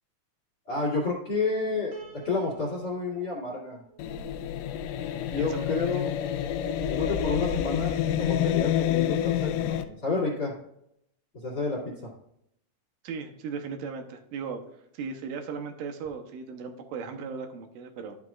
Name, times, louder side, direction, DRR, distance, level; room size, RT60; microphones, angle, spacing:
voice 1, 0.7-2.0 2.2-3.8 5.3-6.1 6.8-10.5 11.3-12.1, left 3 dB, 35° left, -6 dB, 2.2 m, -30 dB
Piano, 1.9-5.1, right 6 dB, 60° right, 2.5 m, -49 dB
sound 1, 4.0-9.8, left 10 dB, 85° left, 2.2 m, -28 dB
voice 2, 13.0-14.6 14.9-18.2, right 5 dB, 85° right, 5 dB, 2.5 m, -37 dB
11.5 x 5.9 x 2.4 m, 0.76 s
omnidirectional pair, 3.8 m